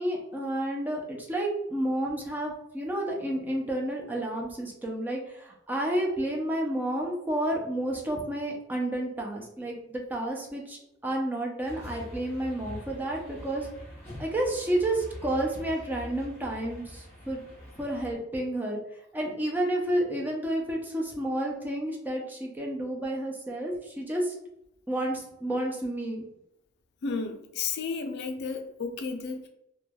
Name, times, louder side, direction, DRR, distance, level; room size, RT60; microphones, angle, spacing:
voice 1, 0.0-13.7 14.2-17.4 17.8-18.8 19.1-24.3 24.9-26.3, right 1 dB, 10° right, -1 dB, 0.4 m, -30 dB
sound 1, 11.7-18.1, equal, 15° left, 0.9 m, -44 dB
voice 2, 27.0-29.5, left 4 dB, 60° left, 5 dB, 0.4 m, -33 dB
3.1 x 2.1 x 2.2 m, 0.81 s
head